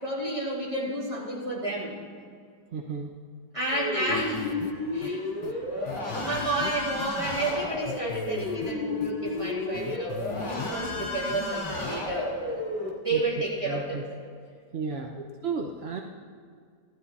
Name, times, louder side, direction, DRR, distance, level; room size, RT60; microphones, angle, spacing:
voice 1, 0.0-2.0 3.5-4.6 4.9-12.7 13.0-14.2 14.9-15.0, right 2 dB, 20° right, -6 dB, 3.3 m, -31 dB
voice 2, 2.7-3.1 13.1-13.2 13.7-14.0 14.7-15.1 15.4-16.0, right 5 dB, 55° right, 3 dB, 0.7 m, -33 dB
sound 1, 3.7-12.9, left 2 dB, 40° left, 2.8 m, -32 dB
sound 2, 4.1-4.7 5.0-5.1 5.4-5.5 5.9-7.5 7.8-8.7 9.0-10.7 11.0-11.5 11.8-11.9, left 8 dB, 75° left, 1.2 m, -39 dB
15.5 x 12.5 x 4.1 m, 2.1 s
omnidirectional pair, 1.8 m